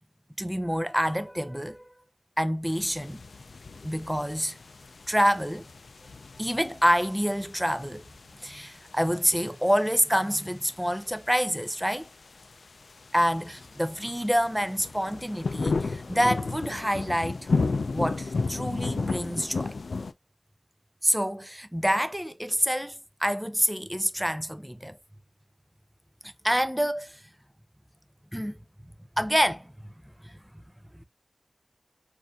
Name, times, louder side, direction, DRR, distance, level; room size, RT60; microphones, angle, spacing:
voice 1, 0.4-1.8 2.4-3.2 3.8-4.6 5.1-5.7 6.4-8.0 8.4-12.1 13.1-17.5 17.9-19.8 21.0-25.0 26.4-27.2 28.3-28.6 29.2-29.9 30.2-30.6 30.9-31.0, equal, 5° right, 0.4 m, -27 dB
sound 1, 2.7-20.1, left 3 dB, 80° left, 0.3 m, -34 dB
4.0 x 2.5 x 2.2 m
wide cardioid pair, 50°, 0 cm